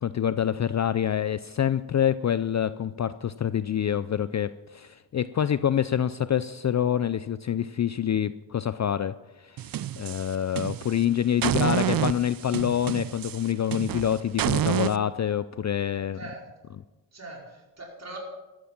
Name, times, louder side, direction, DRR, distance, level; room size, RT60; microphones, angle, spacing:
voice 1, 0.0-9.6 10.0-16.2, left 9 dB, 40° left, 15 dB, 0.4 m, -26 dB
sound 1, 9.6-11.0 11.4-15.0, right 11 dB, 50° right, 0.5 m, -28 dB
voice 2, 11.4-11.8 16.1-16.4 17.1-18.2, right 2 dB, 35° right, -1 dB, 4.9 m, -42 dB
13.5 x 12.5 x 6.0 m, 1.1 s
cardioid pair, 85°, 45 cm